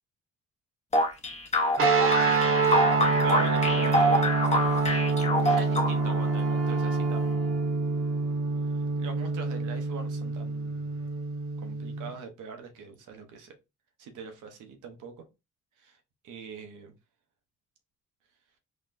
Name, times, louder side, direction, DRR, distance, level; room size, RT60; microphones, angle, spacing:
sound 1, 0.9-6.2, left 1 dB, 20° left, 0.9 m, -26 dB
sound 2, 1.8-12.1, right 3 dB, 50° right, 0.9 m, -26 dB
voice 1, 2.9-4.4 5.4-7.7 8.9-11.0 11.6-13.5 14.0-15.1 15.8-16.0 16.2-16.9, right 5 dB, 85° right, 0.8 m, -42 dB
Wind instrument woodwind instrument, 5.1-9.0, right 1 dB, 5° left, 0.5 m, -44 dB
4.0 x 2.1 x 2.6 m
cardioid pair, 90°, 30 cm